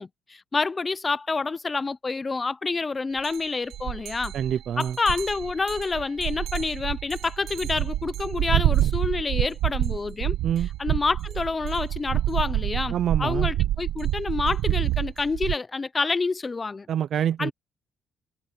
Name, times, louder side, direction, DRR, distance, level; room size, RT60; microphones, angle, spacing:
voice 1, 0.0-4.3 4.8-10.4 10.8-16.9 17.4-17.5, left 4 dB, 30° left, 0.7 m, -28 dB
sound 1, 3.2-3.4 3.7-15.5, right 13 dB, 85° right, 1.1 m, -27 dB
voice 2, 4.3-5.0 10.4-10.7 12.9-13.5 16.9-17.5, right 9 dB, 65° right, 0.5 m, -26 dB
cardioid pair, 90°, 0 cm